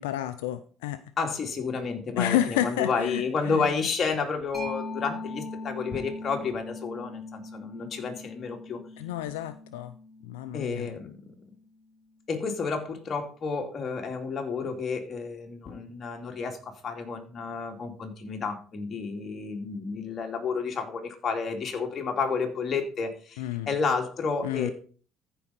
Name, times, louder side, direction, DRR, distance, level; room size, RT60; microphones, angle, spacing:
voice 1, 0.0-1.0 2.2-3.2 9.0-9.9 10.2-10.9 23.4-23.7 24.4-24.7, left 12 dB, 90° left, 12 dB, 0.5 m, -29 dB
voice 2, 1.2-8.8 10.5-11.3 12.3-24.7, left 5 dB, 40° left, 3 dB, 2.4 m, -31 dB
Mallet percussion, 4.5-11.8, left 2 dB, 5° right, 5.1 m, -41 dB
14.0 x 5.4 x 4.1 m, 0.40 s
supercardioid pair, 75°, 0 cm